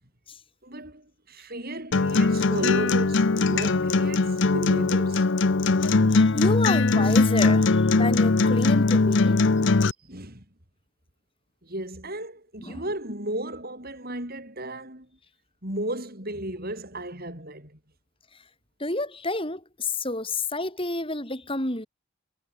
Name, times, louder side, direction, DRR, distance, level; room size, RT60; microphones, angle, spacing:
voice 1, 0.6-5.3 10.0-10.5 11.6-15.1 15.6-17.8, right 1 dB, 40° right, 8.0 m, -34 dB
Acoustic guitar, 1.9-9.9, left 3 dB, 55° left, 0.7 m, -21 dB
voice 2, 6.1-9.4 12.6-12.9 18.8-21.9, left 2 dB, 25° left, 5.4 m, -30 dB
head